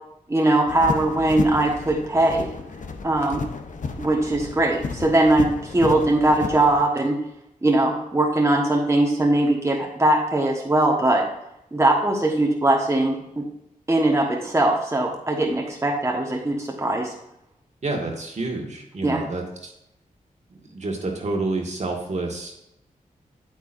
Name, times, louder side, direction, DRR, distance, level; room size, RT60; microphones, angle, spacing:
voice 1, 0.3-2.5 3.0-3.4 4.0-7.2 7.6-11.2 11.7-13.5 13.9-17.1 19.0-19.2, right 2 dB, 20° right, -1 dB, 1.3 m, -21 dB
sound 1, 0.7-6.8, left 4 dB, 60° left, 0.8 m, -32 dB
voice 2, 17.8-19.7 20.5-22.6, right 2 dB, 55° right, 1 dB, 1.7 m, -29 dB
8.8 x 8.0 x 2.6 m, 0.82 s
cardioid pair, 65°, 15 cm